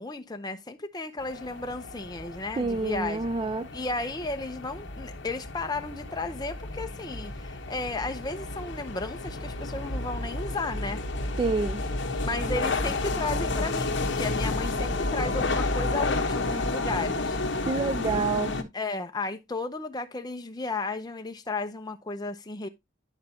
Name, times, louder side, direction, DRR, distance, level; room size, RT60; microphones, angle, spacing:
voice 1, 0.0-3.3 3.7-11.0 12.2-17.4 18.7-22.7, left 3 dB, 20° left, 0.7 m, -34 dB
sound 1, 1.2-18.6, left 2 dB, 60° left, 1.2 m, -31 dB
voice 2, 2.6-3.7 11.4-11.8 17.7-18.5, right 3 dB, 25° right, 0.4 m, -27 dB
11.5 x 5.0 x 2.8 m
head